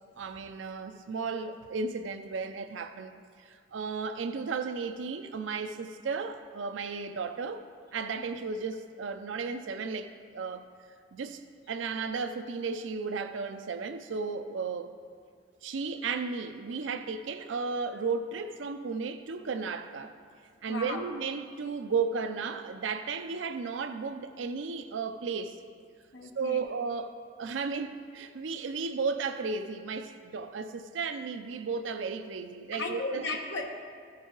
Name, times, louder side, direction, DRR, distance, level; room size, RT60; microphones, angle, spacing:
voice 1, 0.2-7.6 7.9-10.6 11.1-11.4 11.7-14.9 15.6-20.1 20.6-25.6 26.4-33.2, right 4 dB, 80° right, 9 dB, 0.5 m, -34 dB
voice 2, 20.7-21.0 26.1-26.6 32.7-33.7, left 3 dB, 65° left, 1 dB, 1.2 m, -35 dB
14.5 x 5.5 x 3.9 m, 2.1 s
head